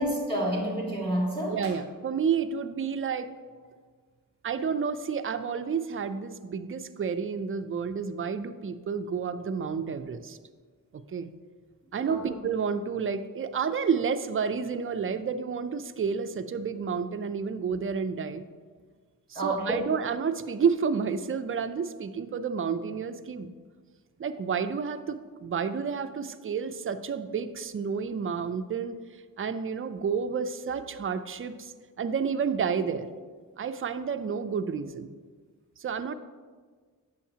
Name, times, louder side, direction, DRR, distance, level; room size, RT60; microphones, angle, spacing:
voice 1, 0.0-1.7 12.0-12.3 19.3-19.9, right 1 dB, 15° left, -3 dB, 1.8 m, -29 dB
voice 2, 1.5-3.3 4.4-10.4 10.9-11.3 11.9-18.4 19.3-23.5 24.2-29.0 29.4-31.7 32.0-33.1 33.6-35.2 35.8-36.1, right 6 dB, 35° right, 10 dB, 0.4 m, -30 dB
8.4 x 6.4 x 2.8 m, 1.5 s
cardioid pair, 55°, 36 cm